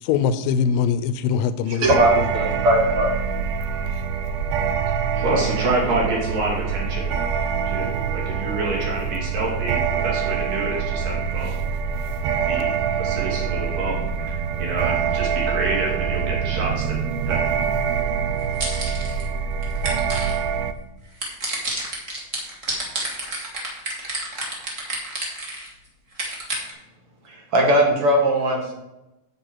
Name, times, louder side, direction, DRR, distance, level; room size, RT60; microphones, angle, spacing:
voice 1, 0.0-2.3, left 7 dB, 85° left, 13 dB, 2.2 m, -22 dB
voice 2, 1.7-3.2 27.3-28.7, right 1 dB, 50° right, 0 dB, 2.1 m, -19 dB
sound 1, 1.8-20.7, right 7 dB, 85° right, 2.4 m, -25 dB
voice 3, 5.1-7.1 7.7-11.6 12.4-17.0 17.2-17.4, right 2 dB, 70° right, -3 dB, 4.3 m, -28 dB
sound 2, 18.4-19.2 19.6-20.4 21.2-25.7 26.1-26.7, right 2 dB, 30° right, 1.6 m, -29 dB
9.4 x 7.8 x 4.5 m, 0.95 s
omnidirectional pair, 4.1 m